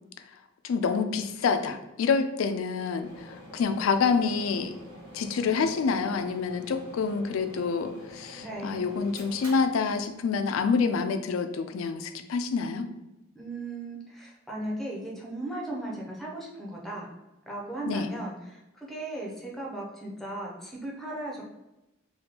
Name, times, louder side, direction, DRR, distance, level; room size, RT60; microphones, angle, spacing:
voice 1, 0.6-4.7 5.1-12.9 17.9-18.1, left 5 dB, 90° left, 8 dB, 0.3 m, -27 dB
sound 1, 3.0-10.7, equal, 20° right, 1.3 m, -47 dB
voice 2, 8.4-8.9 13.3-17.1 17.5-21.4, right 1 dB, ahead, -2 dB, 0.6 m, -37 dB
3.4 x 2.3 x 2.8 m, 0.96 s
head